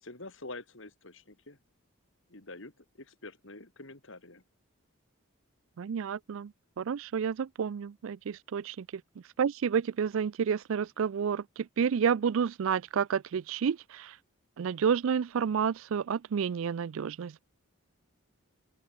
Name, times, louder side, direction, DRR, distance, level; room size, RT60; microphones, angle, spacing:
voice 1, 0.0-1.6 2.3-4.4, left 2 dB, 60° left, 2.6 m, -46 dB
voice 2, 5.8-9.0 9.4-14.2 14.6-17.4, right 7 dB, 70° right, 0.4 m, -30 dB
open air
head